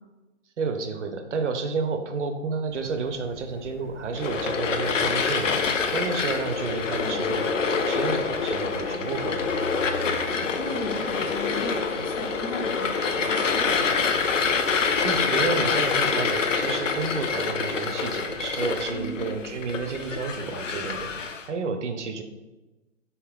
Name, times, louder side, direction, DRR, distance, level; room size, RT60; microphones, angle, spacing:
voice 1, 0.6-9.6 15.0-22.2, right 4 dB, 70° right, 7 dB, 0.6 m, -31 dB
sound 1, 2.7-21.2, right 1 dB, 70° left, 1.1 m, -46 dB
sound 2, 4.1-21.4, left 5 dB, 90° left, 0.5 m, -26 dB
Boiling, 6.2-19.7, left 1 dB, 45° left, 1.2 m, -48 dB
voice 2, 10.2-14.2 18.9-19.2, left 1 dB, 25° left, 0 dB, 0.5 m, -36 dB
4.2 x 3.5 x 2.2 m, 1.1 s
figure-of-eight pair, 130°, 37 cm